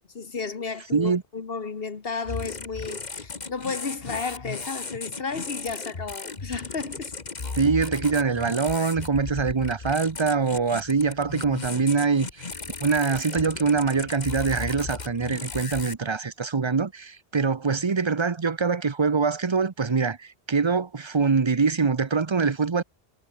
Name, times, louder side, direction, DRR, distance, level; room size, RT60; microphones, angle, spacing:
voice 1, 0.2-7.1, left 4 dB, 65° left, 1.7 m, -33 dB
voice 2, 0.9-1.2 7.6-12.5 12.8-22.8, right 5 dB, 30° right, 0.8 m, -24 dB
sound 1, 2.2-16.0, left 4 dB, 45° left, 1.7 m, -36 dB
omnidirectional pair, 1.1 m